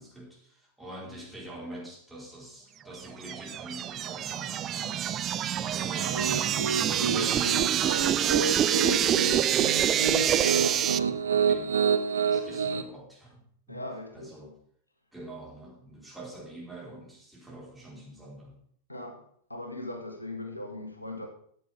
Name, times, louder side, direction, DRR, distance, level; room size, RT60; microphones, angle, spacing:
voice 1, 0.0-11.8 12.3-13.8 14.1-14.5 15.1-18.6, right 1 dB, 5° right, 4.7 m, -44 dB
sound 1, 3.0-11.0, right 10 dB, 30° right, 0.5 m, -26 dB
Piano, 6.0-12.8, right 6 dB, 70° right, 0.8 m, -28 dB
voice 2, 13.7-14.3 18.9-19.2 19.5-21.3, left 2 dB, 85° left, 1.4 m, -39 dB
13.5 x 8.4 x 3.6 m
figure-of-eight pair, 90°, 0 cm